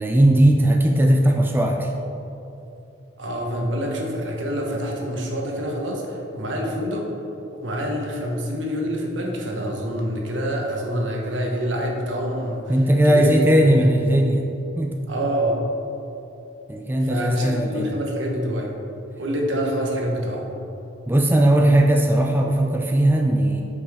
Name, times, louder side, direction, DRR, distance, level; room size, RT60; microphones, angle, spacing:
voice 1, 0.0-1.9 12.7-14.4 14.8-15.1 16.7-17.9 21.1-23.6, right 1 dB, 10° right, 1 dB, 0.3 m, -18 dB
voice 2, 3.2-7.1 7.5-12.7 13.0-13.3 13.8-13.9 15.1-15.6 17.1-18.7 19.2-20.5, equal, 75° right, 0 dB, 1.1 m, -26 dB
8.3 x 5.1 x 3.6 m, 2.9 s
head